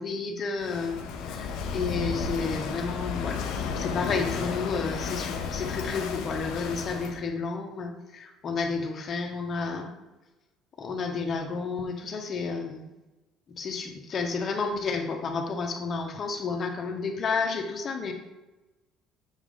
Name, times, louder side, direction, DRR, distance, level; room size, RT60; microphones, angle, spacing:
voice 1, 0.0-9.9 10.8-12.9 13.5-18.1, left 4 dB, 45° left, 3 dB, 1.3 m, -31 dB
Walk footsteps / Wind / Waves surf, 0.6-7.2, left 5 dB, 70° left, 0.7 m, -33 dB
7.4 x 4.9 x 3.9 m, 1.1 s
hypercardioid pair, 60°, 0 cm